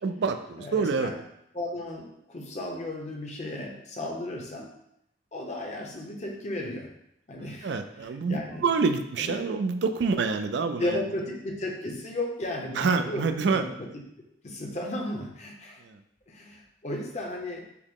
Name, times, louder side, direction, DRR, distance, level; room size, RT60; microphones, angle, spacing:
voice 1, 0.0-1.1 7.6-11.0 12.8-13.6 15.8-16.0, right 4 dB, 65° right, 8 dB, 0.3 m, -27 dB
voice 2, 0.6-1.2 1.5-4.7 5.3-6.9 7.3-7.7 8.0-8.6 9.2-9.4 10.7-14.0 14.4-15.8 16.3-17.7, left 1 dB, 35° left, 1 dB, 0.7 m, -34 dB
5.8 x 2.0 x 3.6 m, 0.78 s
head